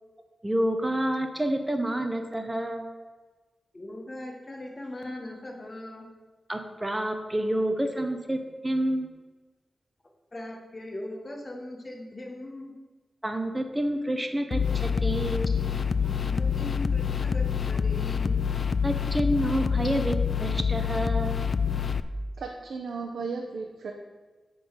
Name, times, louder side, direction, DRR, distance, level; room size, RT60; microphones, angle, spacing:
voice 1, 0.4-2.9 6.5-9.1 13.2-15.5 18.8-21.4, right 1 dB, 10° right, 5 dB, 0.7 m, -28 dB
voice 2, 3.7-6.1 10.3-12.7 16.0-18.5, left 1 dB, 25° left, 1 dB, 1.3 m, -39 dB
sound 1, 14.5-22.0, left 6 dB, 45° left, 0.3 m, -27 dB
voice 3, 22.4-23.9, right 4 dB, 85° right, 1 dB, 0.8 m, -35 dB
8.9 x 3.9 x 7.1 m, 1.3 s
wide cardioid pair, 180°, 0 cm